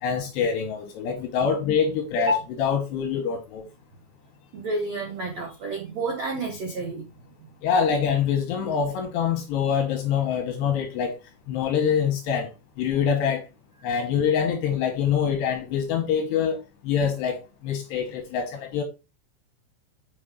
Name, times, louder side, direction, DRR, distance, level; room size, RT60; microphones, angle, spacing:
voice 1, 0.0-3.7 7.6-11.2 11.5-12.5 12.8-13.4 13.8-18.8, left 7 dB, 75° left, 2.6 m, -25 dB
voice 2, 4.5-7.1, right 1 dB, 85° right, 1.4 m, -29 dB
7.9 x 5.6 x 3.7 m
omnidirectional pair, 5.9 m